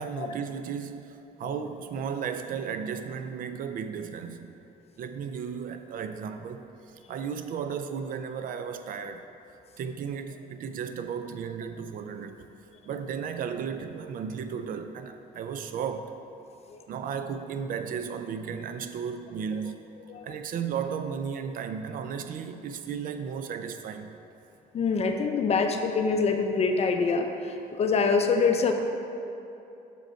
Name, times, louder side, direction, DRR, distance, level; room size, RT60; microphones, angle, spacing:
voice 1, 0.0-4.5 5.0-9.2 9.8-12.4 12.9-16.1 16.9-19.8 20.2-24.2, right 7 dB, 55° right, 8 dB, 0.4 m, -34 dB
voice 2, 24.7-28.7, left 4 dB, 40° left, 5 dB, 0.6 m, -25 dB
6.6 x 5.0 x 4.4 m, 2.8 s
cardioid pair, 110°, 17 cm